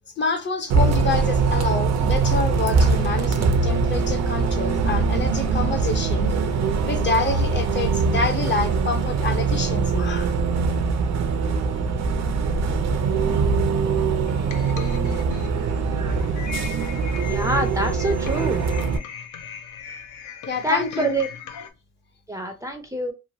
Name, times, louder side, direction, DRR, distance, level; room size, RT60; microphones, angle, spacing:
voice 1, 0.2-6.4 6.8-10.3 20.5-21.2, left 4 dB, 40° left, 0.7 m, -27 dB
Bus, 0.7-19.0, right 4 dB, 60° right, 0.6 m, -22 dB
sound 1, 13.3-21.7, left 7 dB, 75° left, 0.6 m, -39 dB
voice 2, 17.3-18.6 20.6-21.3 22.3-23.1, right 1 dB, 10° right, 0.5 m, -26 dB
3.1 x 2.2 x 2.6 m
cardioid pair, 90°, 30 cm